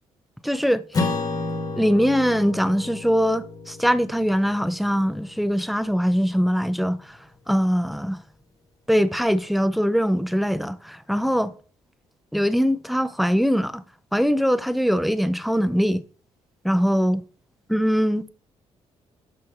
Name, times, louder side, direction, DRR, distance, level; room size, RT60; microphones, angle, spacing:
voice 1, 0.4-0.8 1.8-7.2 7.5-8.2 8.9-11.5 12.3-13.8 14.1-16.0 16.6-17.2 17.7-18.3, equal, ahead, 0.4 m, -22 dB
Acoustic guitar / Strum, 0.9-5.7, left 3 dB, 35° left, 1.4 m, -31 dB
12.0 x 4.4 x 2.6 m
cardioid pair, 125°, 11 cm